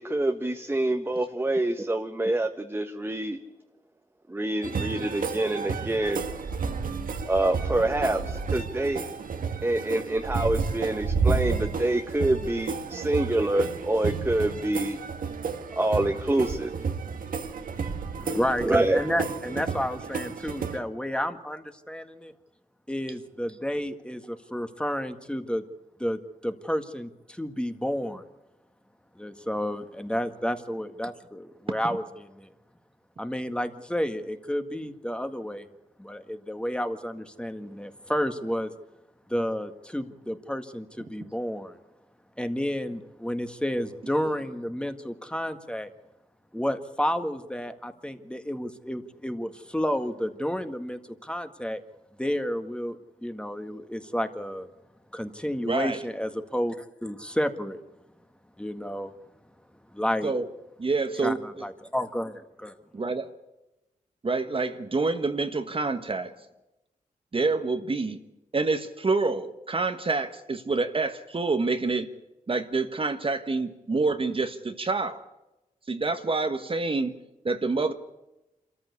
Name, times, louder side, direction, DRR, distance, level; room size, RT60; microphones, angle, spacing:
voice 1, 0.0-3.4 4.3-6.2 7.3-9.0 9.6-15.0 15.8-16.7 18.6-19.0, right 1 dB, 15° right, 5 dB, 1.4 m, -26 dB
sound 1, 4.6-20.8, right 5 dB, 75° right, 1.8 m, -31 dB
voice 2, 18.2-22.3 22.9-25.6 26.0-28.2 29.2-32.5 33.2-35.7 36.0-38.7 39.3-41.8 42.4-45.9 46.5-51.8 52.2-54.7 55.1-57.8 58.6-59.1 59.9-60.3 61.2-62.8, equal, 5° left, 7 dB, 1.8 m, -31 dB
voice 3, 55.7-56.0 60.2-60.5 60.8-61.4 62.9-63.3 64.2-66.3 67.3-68.2 68.5-72.1 72.5-75.2 75.9-77.2 77.4-77.9, right 3 dB, 40° right, 8 dB, 1.4 m, -27 dB
26.0 x 14.0 x 8.4 m, 0.99 s
cardioid pair, 70°, 14 cm